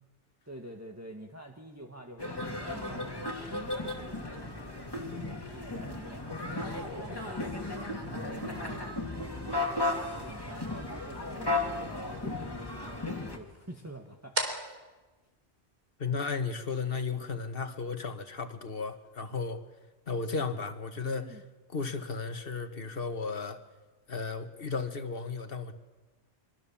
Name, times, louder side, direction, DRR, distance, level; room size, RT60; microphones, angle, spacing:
voice 1, 0.5-7.4 8.1-9.0 9.4-11.8 12.2-12.4 13.2-14.8 21.2-21.4, right 1 dB, 15° right, 1 dB, 1.6 m, -47 dB
sound 1, 2.2-13.4, left 2 dB, 20° left, 2.6 m, -35 dB
sound 2, 2.7-16.3, right 1 dB, 60° right, 4.2 m, -46 dB
voice 2, 16.0-19.6 20.1-21.4 21.7-23.6 24.1-25.7, left 4 dB, 55° left, 8 dB, 1.8 m, -34 dB
24.5 x 24.0 x 7.3 m, 1.2 s
omnidirectional pair, 1.1 m